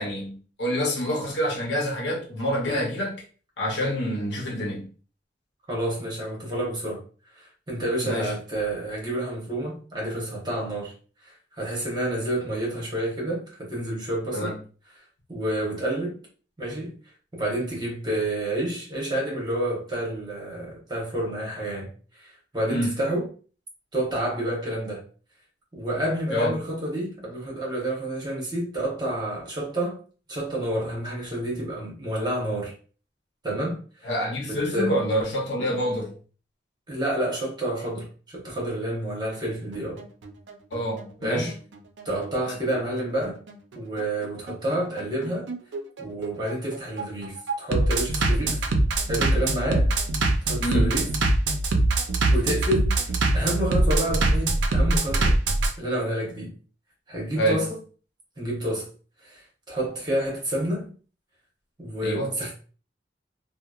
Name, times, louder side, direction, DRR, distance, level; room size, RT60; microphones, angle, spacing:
voice 1, 0.0-3.2 3.6-4.9 8.0-8.3 14.3-14.6 22.7-23.0 26.3-26.6 34.0-36.2 40.7-41.5 50.6-51.0 57.4-57.6 62.0-62.3, equal, 80° left, 0.8 m, -27 dB
voice 2, 5.7-7.0 7.4-10.9 11.2-14.6 15.3-16.2 16.6-16.9 17.3-23.3 23.9-25.0 25.7-30.0 30.3-32.7 33.4-34.1 34.5-35.0 36.9-40.0 41.2-41.5 42.0-43.4 43.7-45.5 46.0-48.6 49.1-49.9 50.4-51.1 52.3-53.0 53.3-55.4 55.8-56.5 57.1-57.8 58.4-58.9 59.2-60.9 61.8-62.5, right 1 dB, 25° right, 1.0 m, -29 dB
Bass drum, 39.7-55.7, right 2 dB, 85° right, 0.5 m, -23 dB
2.9 x 2.0 x 2.3 m
head